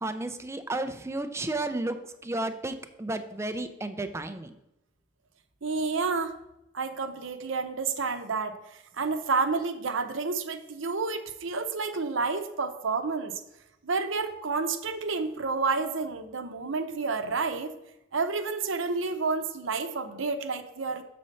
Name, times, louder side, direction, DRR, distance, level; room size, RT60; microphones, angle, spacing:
voice 1, 0.0-4.5, right 2 dB, 15° right, 9 dB, 0.5 m, -32 dB
voice 2, 5.6-6.3 6.7-13.4 13.8-17.7 18.1-21.0, right 4 dB, 80° right, 7 dB, 0.7 m, -30 dB
6.7 x 4.2 x 6.4 m, 0.91 s
head